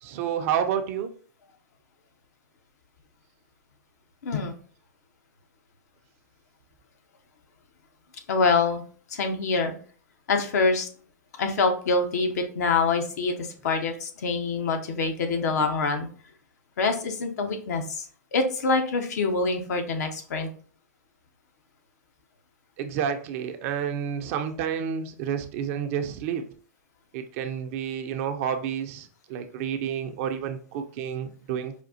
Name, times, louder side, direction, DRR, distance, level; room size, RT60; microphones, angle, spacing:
voice 1, 0.0-1.1 22.8-26.5 27.1-31.8, right 8 dB, 50° right, 6 dB, 0.5 m, -30 dB
voice 2, 4.2-4.6 8.3-8.8 9.1-9.7 10.3-10.9 11.3-16.1 16.8-18.1 18.3-20.5, left 4 dB, 70° left, 6 dB, 0.8 m, -25 dB
5.0 x 2.4 x 2.6 m, 0.43 s
hypercardioid pair, 110°, 9 cm